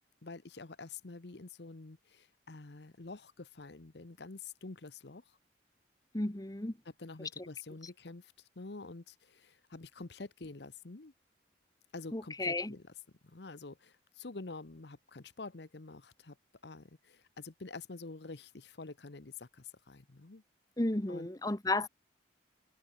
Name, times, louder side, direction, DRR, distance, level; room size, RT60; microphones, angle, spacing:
voice 1, 0.2-5.4 7.0-11.1 11.9-12.8 13.2-16.4 16.6-20.4 21.1-21.3, left 3 dB, 60° left, 1.0 m, -47 dB
voice 2, 6.1-6.8 7.2-7.5 12.1-12.7 20.8-21.9, left 2 dB, 20° left, 1.2 m, -33 dB
head